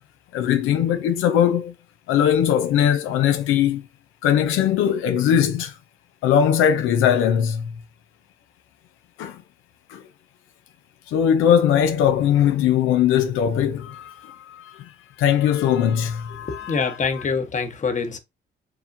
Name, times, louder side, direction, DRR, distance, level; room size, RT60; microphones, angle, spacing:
voice 1, 0.3-1.7 2.1-3.8 4.2-5.8 6.2-7.7 9.2-9.4 9.9-10.0 11.1-14.9 15.2-17.3, left 9 dB, 90° left, 0.6 m, -20 dB
voice 2, 16.5-18.2, left 5 dB, 40° left, 1.1 m, -25 dB
4.9 x 3.6 x 2.6 m
cardioid pair, 90°, 20 cm